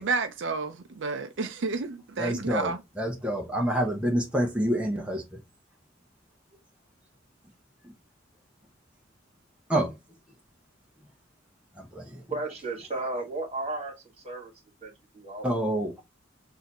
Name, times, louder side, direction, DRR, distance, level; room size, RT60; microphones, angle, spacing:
voice 1, 0.0-2.8, right 4 dB, 65° right, 0.5 m, -31 dB
voice 2, 2.2-2.7 3.0-5.2 9.7-9.9 11.8-12.2 15.4-16.0, right 1 dB, 5° right, 0.9 m, -27 dB
voice 3, 12.3-13.9 14.2-14.5 14.8-15.5, right 2 dB, 30° right, 2.0 m, -34 dB
6.4 x 2.7 x 2.9 m
head